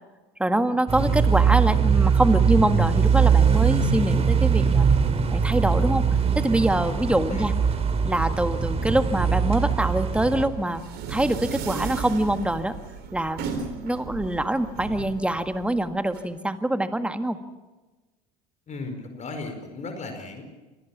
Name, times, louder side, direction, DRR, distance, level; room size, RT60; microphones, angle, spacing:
voice 1, 0.4-4.9 5.3-6.1 6.4-7.5 8.0-10.8 11.1-12.7 13.1-17.4, right 1 dB, 5° right, 9 dB, 1.8 m, -24 dB
sound 1, 0.9-10.5, right 6 dB, 35° right, 3.2 m, -21 dB
sound 2, 10.4-16.2, right 6 dB, 60° right, 4.0 m, -35 dB
voice 2, 18.7-20.4, left 3 dB, 40° left, 6 dB, 5.0 m, -36 dB
26.0 x 19.0 x 7.2 m, 1.2 s
hypercardioid pair, 75°, 19 cm